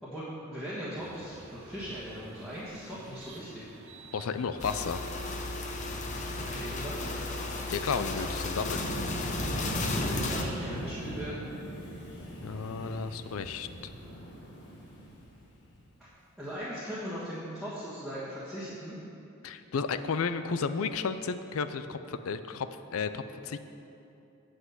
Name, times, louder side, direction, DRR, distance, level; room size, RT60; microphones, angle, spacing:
voice 1, 0.0-3.6 6.4-7.1 9.9-11.4 16.4-18.9, equal, ahead, -12 dB, 1.5 m, -39 dB
sound 1, 1.0-10.9, right 2 dB, 65° right, 1.0 m, -50 dB
voice 2, 4.1-5.0 7.7-8.9 12.4-13.7 19.4-23.6, left 5 dB, 80° left, 11 dB, 0.4 m, -33 dB
sound 2, 4.6-10.4, left 3 dB, 35° left, 0.7 m, -35 dB
Wind, 5.5-15.8, equal, 55° left, 1.5 m, -39 dB
7.9 x 6.0 x 8.0 m, 2.8 s
head